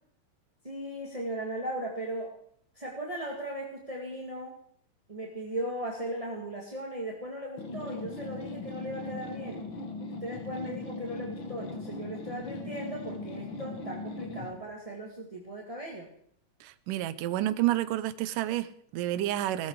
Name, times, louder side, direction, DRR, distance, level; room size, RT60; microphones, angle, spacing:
voice 1, 0.6-2.3 2.7-4.6 5.1-9.7 10.0-16.1, right 1 dB, 15° right, -1 dB, 1.5 m, -37 dB
sound 1, 7.6-14.6, left 3 dB, 45° left, 1.8 m, -39 dB
voice 2, 16.6-19.7, right 14 dB, 75° right, 13 dB, 2.4 m, -30 dB
19.0 x 14.0 x 4.8 m, 0.65 s
omnidirectional pair, 4.0 m